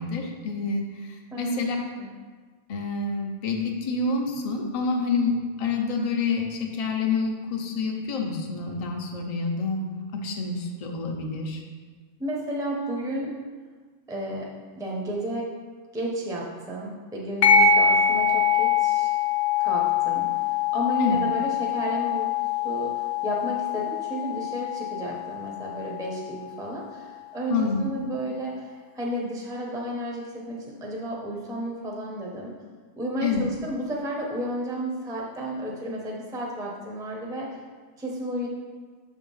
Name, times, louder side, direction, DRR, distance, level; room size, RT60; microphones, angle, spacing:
voice 1, 0.0-1.8 2.7-9.9 10.1-11.6 21.0-21.2 27.5-27.8 33.2-33.4, left 4 dB, 35° left, 1 dB, 0.7 m, -28 dB
voice 2, 12.2-13.4 14.1-15.5 15.9-19.1 19.6-32.5 33.0-37.6 38.0-38.5, equal, 5° right, -3 dB, 0.8 m, -32 dB
sound 1, 17.4-26.4, left 6 dB, 65° left, 1.1 m, -24 dB
6.8 x 3.6 x 5.5 m, 1.5 s
omnidirectional pair, 1.3 m